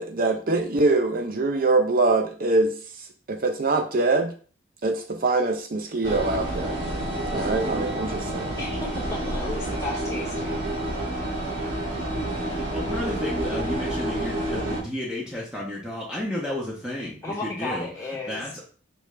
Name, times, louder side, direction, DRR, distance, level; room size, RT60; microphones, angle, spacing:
voice 1, 0.0-4.3 4.8-6.8 7.3-8.6, right 3 dB, 45° right, 0.6 m, -24 dB
sound 1, 6.0-14.8, right 1 dB, 75° right, 2.6 m, -29 dB
voice 2, 8.6-10.5 17.2-18.6, left 3 dB, 15° left, 2.4 m, -34 dB
voice 3, 12.4-17.9 18.3-18.5, left 1 dB, 5° right, 1.2 m, -32 dB
6.1 x 5.3 x 3.3 m
head